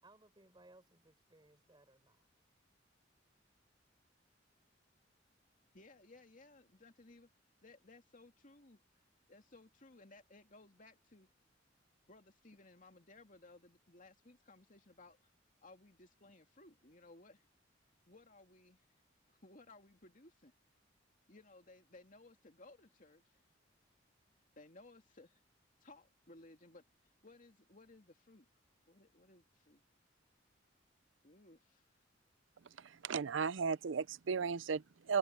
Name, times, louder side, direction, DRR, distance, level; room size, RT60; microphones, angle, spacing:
voice 1, 0.0-2.3, right 2 dB, 25° right, 4.9 m, -64 dB
voice 2, 5.7-7.3 7.6-8.8 9.3-11.3 12.0-15.2 15.6-17.5 18.1-18.8 19.3-20.5 21.3-23.4 24.6-25.4 25.8-26.8 27.2-28.5 28.9-29.8 31.2-31.9, left 2 dB, 45° left, 2.5 m, -60 dB
voice 3, 33.0-35.2, right 5 dB, 85° right, 0.5 m, -35 dB
head